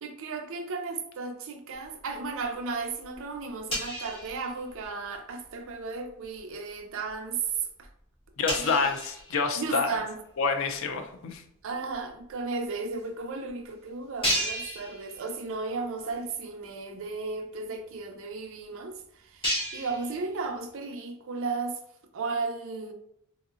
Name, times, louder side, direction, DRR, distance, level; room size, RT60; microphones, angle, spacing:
voice 1, 0.0-7.4 7.8-7.9 8.5-8.9 9.6-10.2 11.6-21.8 22.1-22.9, right 4 dB, 65° right, 0.5 m, -35 dB
sound 1, 1.8-2.6 2.9-5.1 5.4-5.7 6.2-6.5 7.1-7.2 7.5-7.6 7.8-7.9 8.5-10.1 10.7-10.8 11.9-12.0 12.2-12.3 13.0-13.1 13.5-13.6 14.2-15.6 16.0-16.1 16.6-16.7 16.9-20.7, equal, 25° left, 1.2 m, -35 dB
voice 2, 8.4-10.0 10.4-11.4, left 4 dB, 65° left, 0.5 m, -28 dB
3.7 x 2.8 x 2.4 m
head